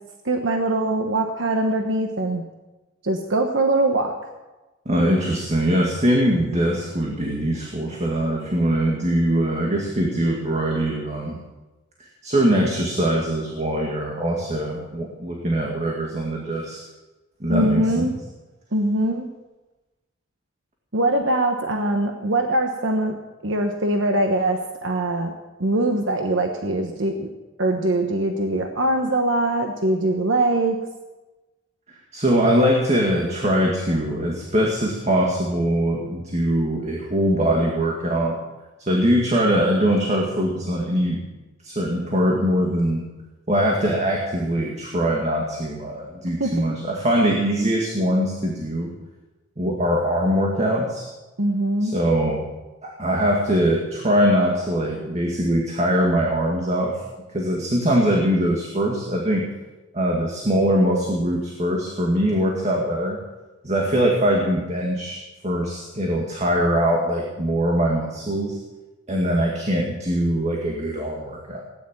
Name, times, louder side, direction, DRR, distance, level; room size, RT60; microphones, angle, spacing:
voice 1, 0.2-2.4 3.0-4.1 17.5-18.1 18.7-19.3 20.9-23.2 23.4-25.3 25.6-27.3 27.6-30.8 46.4-46.5 51.4-52.0, right 1 dB, 70° right, 4 dB, 1.2 m, -22 dB
voice 2, 4.9-11.4 12.0-16.8 17.4-18.1 32.1-38.4 38.8-41.2 41.6-43.0 43.5-48.9 49.6-51.1 51.8-52.5 52.8-57.0 57.3-59.5 59.9-63.2 63.6-68.6 69.1-71.6, equal, 35° right, -1 dB, 2.1 m, -22 dB
16.5 x 10.5 x 7.4 m, 1.1 s
head